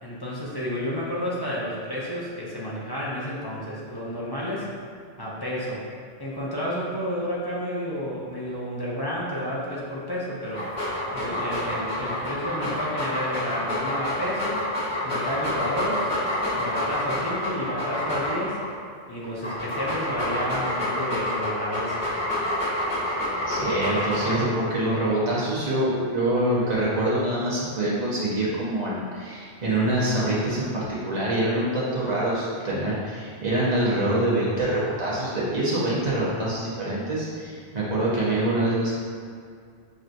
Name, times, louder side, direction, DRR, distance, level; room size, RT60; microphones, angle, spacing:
voice 1, 0.0-4.7 5.2-5.8 6.2-10.7 11.1-14.7 15.0-16.1 16.6-18.6 19.1-22.0, equal, 25° left, -7 dB, 0.7 m, -31 dB
Dog, 10.4-18.7 19.2-24.6, left 1 dB, 65° left, 1.5 m, -28 dB
voice 2, 23.5-39.0, right 1 dB, 40° right, -8 dB, 1.2 m, -25 dB
6.4 x 3.0 x 2.6 m, 2.3 s
omnidirectional pair, 1.1 m